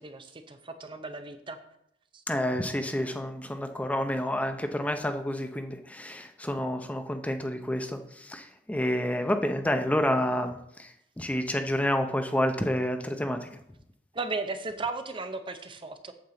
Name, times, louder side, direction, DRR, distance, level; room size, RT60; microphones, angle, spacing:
voice 1, 0.0-1.6 14.1-16.1, right 3 dB, 30° right, 8 dB, 0.6 m, -35 dB
voice 2, 2.3-13.5, left 1 dB, 10° left, 6 dB, 0.6 m, -29 dB
8.7 x 7.3 x 3.9 m, 0.78 s
head